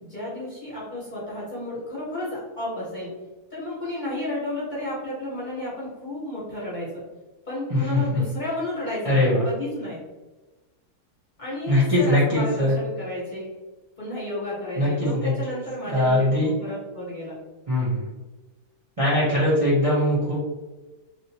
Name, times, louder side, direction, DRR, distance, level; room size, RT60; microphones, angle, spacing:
voice 1, 0.0-3.1 3.5-7.0 7.5-10.0 11.4-13.5 14.0-17.4, left 1 dB, 35° left, -8 dB, 1.1 m, -32 dB
voice 2, 7.7-8.0 9.0-9.4 11.7-12.7 14.8-15.3 15.9-16.5 17.7-18.1 19.0-20.4, left 1 dB, 30° right, -9 dB, 0.7 m, -21 dB
3.0 x 2.8 x 2.8 m, 1.1 s
omnidirectional pair, 1.6 m